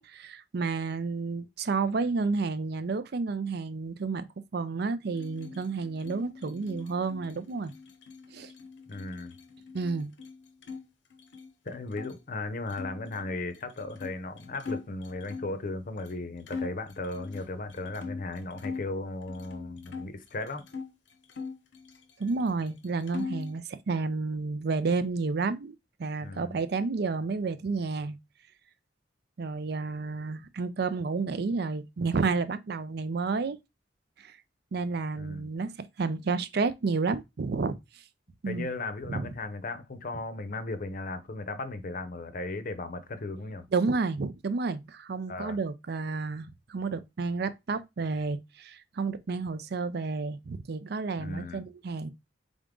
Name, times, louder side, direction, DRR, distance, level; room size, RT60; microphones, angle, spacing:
voice 1, 0.0-4.3 4.5-7.7 8.3-8.5 9.7-10.1 22.2-25.7 26.0-28.2 29.4-33.6 34.2-34.4 34.7-38.0 38.4-38.7 39.1-39.3 43.7-52.1, right 4 dB, 60° right, 0.5 m, -31 dB
sound 1, 5.1-10.8 11.1-12.1 12.7-15.6 16.1-16.2 16.5-18.9 19.3-20.9 21.3-22.4 22.7-23.5, left 5 dB, 80° left, 0.8 m, -42 dB
voice 2, 8.9-9.3 11.6-20.6 26.2-26.6 35.2-35.5 38.5-43.7 45.3-45.6 51.2-51.6, left 2 dB, 50° left, 0.7 m, -36 dB
3.7 x 3.6 x 3.7 m
head